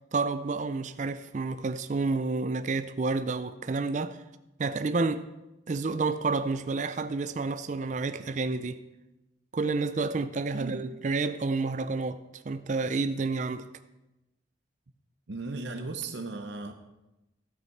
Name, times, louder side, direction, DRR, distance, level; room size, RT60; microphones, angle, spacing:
voice 1, 0.1-4.2 4.6-5.3 5.7-8.8 9.5-12.2 12.5-13.7, right 3 dB, 40° right, 0.4 m, -29 dB
voice 2, 10.5-10.8 15.3-16.7, right 3 dB, 65° right, 0.7 m, -36 dB
12.5 x 8.1 x 4.6 m
head